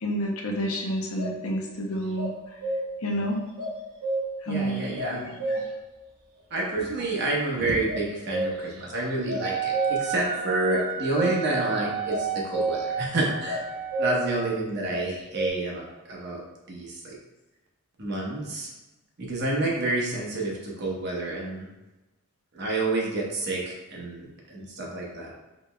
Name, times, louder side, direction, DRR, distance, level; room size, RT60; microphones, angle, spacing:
voice 1, 0.0-2.3 3.0-3.4 4.4-5.6 6.6-6.8 7.5-7.7, equal, 90° left, 0 dB, 0.7 m, -30 dB
sound 1, 1.2-1.4 2.2-3.1 3.6-4.5 5.0-5.9 7.9-8.8 9.1-10.2 10.7-11.6 12.1-13.0 13.5-14.4 14.9-15.5, right 2 dB, 85° right, 0.9 m, -30 dB
voice 2, 4.4-5.3 6.5-13.7 14.0-16.4 16.7-17.2 18.0-18.7 19.2-21.7 22.5-25.3, right 2 dB, 50° right, -2 dB, 1.0 m, -29 dB
Wind instrument woodwind instrument, 9.4-14.4, right 8 dB, 30° right, 0.5 m, -32 dB
5.1 x 3.4 x 2.2 m, 1.1 s
head